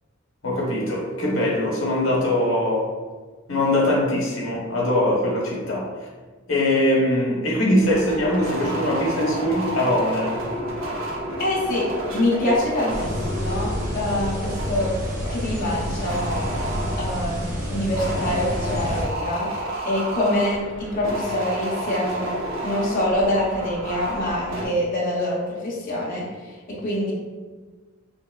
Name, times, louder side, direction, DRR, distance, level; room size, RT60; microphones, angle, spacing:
voice 1, 0.4-2.9 3.5-5.9 6.5-10.4, left 1 dB, 80° left, -2 dB, 0.9 m, -22 dB
sound 1, 7.8-24.7, right 1 dB, 90° right, 0.8 m, -31 dB
voice 2, 11.4-14.9 15.3-16.4 16.9-19.5 19.8-22.3 22.6-26.3 26.7-27.1, left 1 dB, 40° left, -6 dB, 0.6 m, -25 dB
sound 2, 12.9-19.0, equal, 40° right, 0.6 m, -29 dB
3.4 x 2.9 x 2.3 m, 1.4 s
head